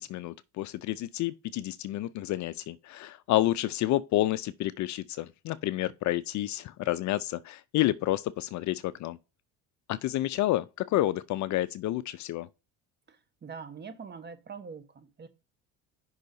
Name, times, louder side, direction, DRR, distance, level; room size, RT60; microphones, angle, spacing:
voice 1, 0.0-9.2 9.9-12.5, left 15 dB, 50° left, 0.5 m, -29 dB
voice 2, 13.1-15.3, right 5 dB, 30° right, 1.3 m, -44 dB
5.6 x 3.9 x 5.3 m
supercardioid pair, 100°, 37 cm